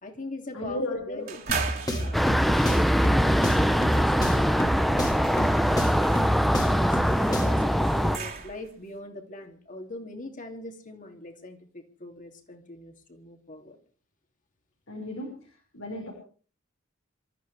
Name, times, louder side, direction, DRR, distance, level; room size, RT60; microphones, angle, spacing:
voice 1, 0.0-1.4 1.8-6.3 6.6-13.8, left 1 dB, 40° left, 2.8 m, -41 dB
voice 2, 0.5-1.2 14.9-16.1, left 1 dB, 85° left, 5.6 m, -35 dB
sound 1, 1.3-8.8, right 6 dB, 50° right, 3.1 m, -39 dB
sound 2, 1.5-7.7, equal, 20° left, 2.4 m, -30 dB
sound 3, 2.1-8.2, equal, ahead, 0.7 m, -23 dB
27.0 x 13.5 x 3.5 m
head